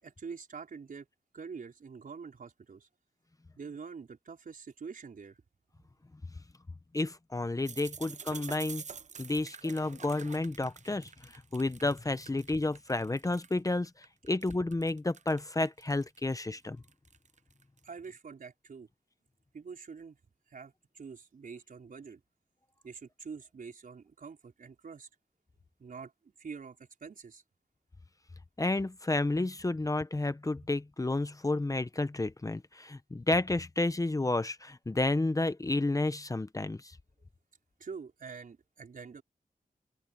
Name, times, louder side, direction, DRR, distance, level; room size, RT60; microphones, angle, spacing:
voice 1, 0.0-1.1 1.3-2.9 3.6-5.4 17.8-18.9 19.5-20.2 20.5-22.2 22.8-25.1 25.8-27.4 37.8-39.2, right 5 dB, 70° right, 4.8 m, -46 dB
voice 2, 6.9-8.8 9.2-13.9 14.2-16.8 28.6-36.9, left 2 dB, 25° left, 0.9 m, -31 dB
sound 1, 7.7-13.7 14.0-17.9, right 6 dB, 55° right, 0.7 m, -47 dB
open air
wide cardioid pair, 85°, 15 cm